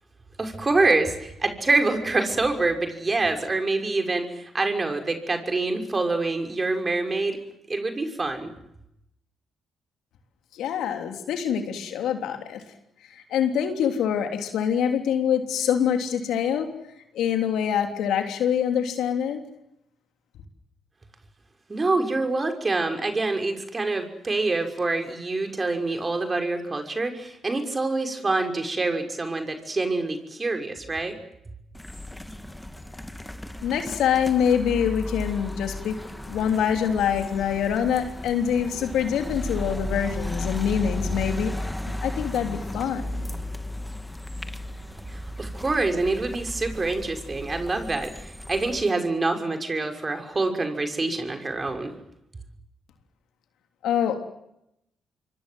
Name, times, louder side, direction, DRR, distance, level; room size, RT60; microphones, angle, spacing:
voice 1, 0.4-7.4 7.7-8.5 21.7-31.2 45.1-51.9, right 3 dB, 30° right, 5 dB, 5.9 m, -26 dB
voice 2, 10.5-12.6 13.1-16.7 17.1-19.4 33.6-36.0 36.3-41.5 42.0-43.2 53.8-54.3, left 8 dB, 70° left, 5 dB, 3.3 m, -25 dB
sound 1, 31.7-48.8, left 1 dB, 10° left, 2.5 m, -35 dB
27.0 x 24.0 x 8.0 m, 0.82 s
hypercardioid pair, 45°, 0 cm